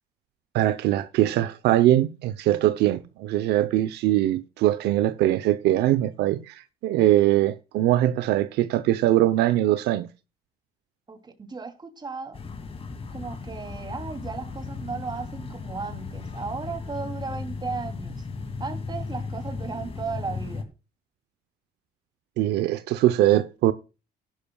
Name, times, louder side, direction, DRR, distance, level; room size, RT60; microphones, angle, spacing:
voice 1, 0.5-10.1 22.4-23.7, right 14 dB, 80° right, 0.8 m, -22 dB
voice 2, 11.1-12.4 13.1-18.3 18.6-20.7, right 4 dB, 25° right, 2.9 m, -35 dB
sound 1, 12.3-20.6, left 4 dB, 35° left, 2.4 m, -36 dB
15.5 x 11.5 x 2.3 m
cardioid pair, 110°, 17 cm